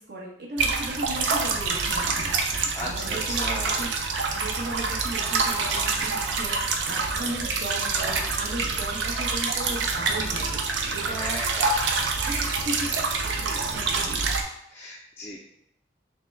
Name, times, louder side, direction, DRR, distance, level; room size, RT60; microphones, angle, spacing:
voice 1, 0.0-3.9 4.3-10.6 10.9-11.6 12.3-13.0 13.2-14.2, right 1 dB, 65° right, -3 dB, 1.1 m, -36 dB
sound 1, 0.6-14.4, right 4 dB, 85° right, 0.5 m, -26 dB
voice 2, 2.7-3.8 11.0-11.7 14.7-15.4, left 1 dB, 10° left, -4 dB, 0.3 m, -36 dB
5.9 x 2.2 x 3.4 m, 0.80 s
head